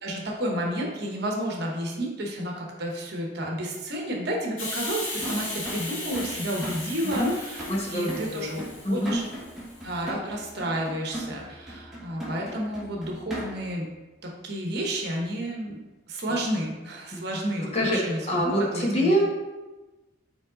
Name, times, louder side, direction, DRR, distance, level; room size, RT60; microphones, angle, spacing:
voice 1, 0.0-9.2 9.8-13.9 14.2-15.8 16.1-19.3, right 1 dB, 55° right, -1 dB, 1.1 m, -31 dB
Hiss, 4.6-9.9, left 2 dB, 75° left, 1.7 m, -37 dB
sound 1, 5.2-13.8, right 1 dB, ahead, 1.3 m, -39 dB
voice 2, 7.6-8.5 8.8-9.2 17.1-17.4 17.7-18.0 18.3-19.3, equal, 30° left, -2 dB, 1.1 m, -25 dB
5.1 x 4.7 x 3.9 m, 1.1 s
head